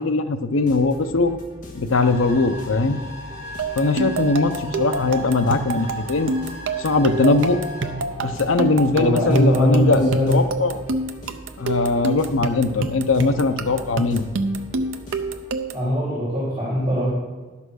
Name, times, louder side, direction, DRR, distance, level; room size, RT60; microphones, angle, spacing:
voice 1, 0.0-1.4 1.7-3.0 3.8-6.3 6.8-7.6 8.2-10.8 11.6-14.3, left 3 dB, 90° left, 9 dB, 0.7 m, -20 dB
sound 1, 0.5-15.6, equal, 40° left, 1.5 m, -41 dB
sound 2, 1.9-8.0, left 1 dB, 15° left, 3.9 m, -38 dB
sound 3, 3.6-15.9, right 3 dB, 75° right, 0.6 m, -28 dB
voice 2, 8.9-10.4 15.7-17.1, equal, 30° right, -8 dB, 3.6 m, -21 dB
11.5 x 5.8 x 6.3 m, 1.3 s
head